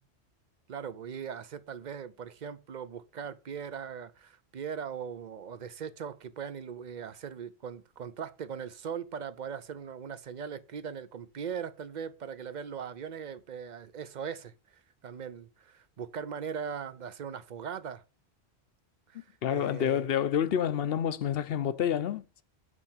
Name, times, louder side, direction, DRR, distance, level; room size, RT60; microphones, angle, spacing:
voice 1, 0.7-14.5 15.0-18.0 19.1-20.1, right 7 dB, 50° right, 0.7 m, -40 dB
voice 2, 19.4-22.4, left 9 dB, 65° left, 0.8 m, -28 dB
8.2 x 4.4 x 7.2 m
omnidirectional pair, 1.1 m